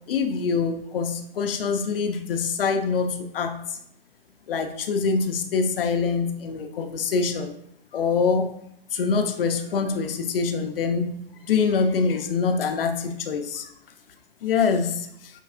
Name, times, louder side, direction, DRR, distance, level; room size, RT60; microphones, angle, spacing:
voice 1, 0.1-3.8 4.5-7.5 7.9-8.5 8.9-11.1 11.4-13.7 14.4-15.1, left 5 dB, 70° left, 6 dB, 0.6 m, -24 dB
5.2 x 3.4 x 2.4 m, 0.72 s
hypercardioid pair, 180°, 30 cm